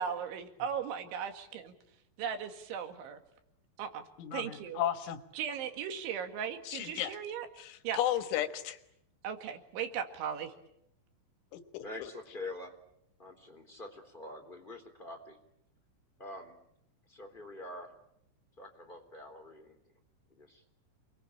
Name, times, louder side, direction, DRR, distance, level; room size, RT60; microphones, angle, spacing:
voice 1, 0.0-1.7 2.2-3.2 3.8-4.8 5.3-7.5 7.8-8.0 9.2-10.5, right 8 dB, 80° right, 7 dB, 4.5 m, -37 dB
voice 2, 4.2-5.2 6.7-7.2 7.6-8.8 11.5-11.8, left 11 dB, 85° left, 9 dB, 3.9 m, -34 dB
voice 3, 11.8-12.7 13.2-15.4 16.2-16.6 17.1-17.9 18.6-19.8 20.3-20.7, left 2 dB, 10° left, 4 dB, 3.2 m, -45 dB
28.5 x 22.0 x 8.8 m, 0.76 s
omnidirectional pair, 5.4 m